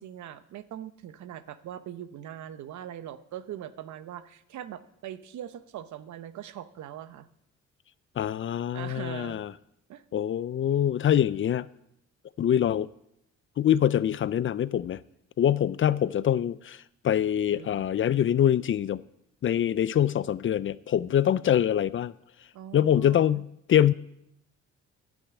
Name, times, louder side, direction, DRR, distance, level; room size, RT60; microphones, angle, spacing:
voice 1, 0.0-7.3 8.7-9.4 9.9-10.0 17.5-18.1 22.5-23.4, right 11 dB, 70° right, 0.8 m, -41 dB
voice 2, 8.2-9.5 10.1-11.7 12.4-12.9 13.6-15.0 15.4-16.8 17.0-19.0 19.4-22.1 22.7-23.9, left 10 dB, 45° left, 0.4 m, -24 dB
13.5 x 6.2 x 8.2 m
cardioid pair, 90°, 30 cm